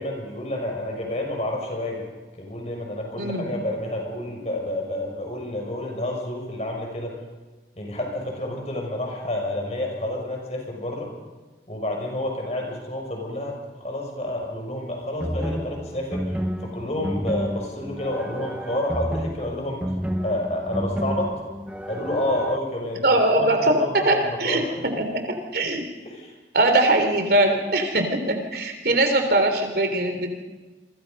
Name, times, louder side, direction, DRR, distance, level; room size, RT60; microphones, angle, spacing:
voice 1, 0.0-2.1 2.4-7.1 7.8-11.1 11.7-13.5 13.8-16.4 16.6-19.8 20.2-21.3 21.9-23.0 23.4-24.9 26.0-26.3, left 1 dB, 40° left, 1 dB, 6.6 m, -29 dB
voice 2, 3.2-3.5 23.0-25.8 26.5-30.4, right 1 dB, 60° right, 5 dB, 3.3 m, -21 dB
sound 1, 15.2-22.6, equal, 5° right, 1.0 m, -30 dB
28.5 x 24.0 x 5.4 m, 1.2 s
head